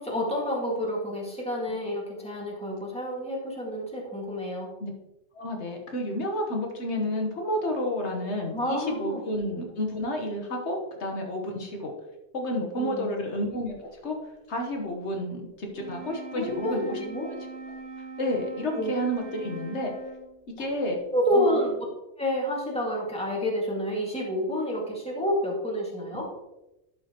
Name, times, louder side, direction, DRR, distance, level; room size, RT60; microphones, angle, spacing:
voice 1, 0.0-4.7 8.5-9.2 12.7-13.2 16.4-17.3 18.7-18.9 21.1-21.7 22.2-26.2, equal, 5° left, -3 dB, 1.9 m, -29 dB
voice 2, 5.3-11.9 12.3-13.7 14.0-14.2 14.5-17.4 18.2-19.9 20.5-21.0 21.3-21.6 26.1-26.2, left 1 dB, 75° left, 2 dB, 1.5 m, -30 dB
Wind instrument woodwind instrument, 15.7-20.5, right 4 dB, 60° right, 1.8 m, -41 dB
11.0 x 5.6 x 2.9 m, 0.96 s
omnidirectional pair, 1.2 m